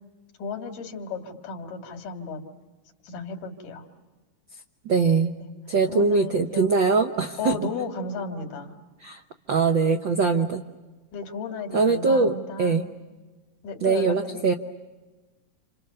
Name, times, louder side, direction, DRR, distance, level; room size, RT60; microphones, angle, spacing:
voice 1, 0.4-2.4 3.0-3.8 5.4-5.5 5.9-6.7 7.4-8.7 11.1-12.8 13.6-14.6, left 4 dB, 90° left, 5 dB, 3.7 m, -34 dB
voice 2, 4.8-5.3 5.7-7.6 9.0-9.2 9.5-10.6 11.7-12.9 13.8-14.5, right 4 dB, 85° right, 5 dB, 1.0 m, -22 dB
29.5 x 27.5 x 6.8 m, 1.2 s
omnidirectional pair, 3.6 m